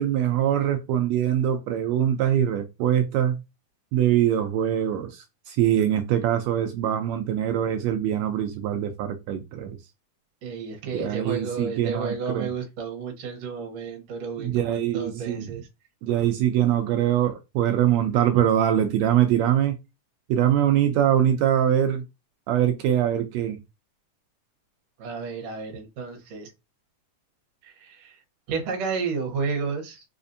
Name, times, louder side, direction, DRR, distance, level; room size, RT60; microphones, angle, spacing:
voice 1, 0.0-3.4 3.9-9.8 10.9-12.5 14.4-15.5 16.0-19.7 20.3-22.0 22.5-23.6, right 10 dB, 80° right, 1.5 m, -23 dB
voice 2, 10.4-15.6 25.0-26.5 27.6-28.2 28.5-30.0, right 5 dB, 65° right, 2.0 m, -32 dB
4.9 x 2.5 x 2.6 m
omnidirectional pair, 3.6 m